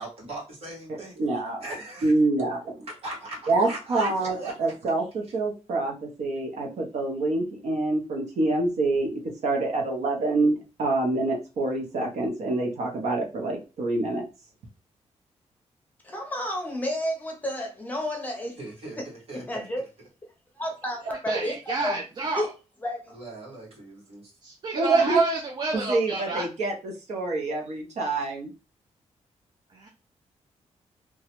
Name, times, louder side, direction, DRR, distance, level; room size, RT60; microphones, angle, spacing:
voice 1, 0.0-1.1 1.6-2.1 2.9-4.5 18.6-19.6 23.1-24.3, right 2 dB, 60° right, 1.5 m, -39 dB
voice 2, 1.2-1.6 2.0-2.9 3.5-14.2 24.7-25.2 25.7-26.7 27.1-28.5, right 2 dB, 75° right, 0.8 m, -26 dB
voice 3, 16.0-18.6 19.0-19.1 19.3-19.8 20.6-21.6 21.8-22.0 22.3-22.5 22.8-23.1, left 1 dB, 15° left, 0.7 m, -31 dB
voice 4, 21.3-22.5 24.4-26.4 29.7-29.9, right 3 dB, 40° right, 0.5 m, -30 dB
3.0 x 2.3 x 2.9 m
wide cardioid pair, 175°, 12 cm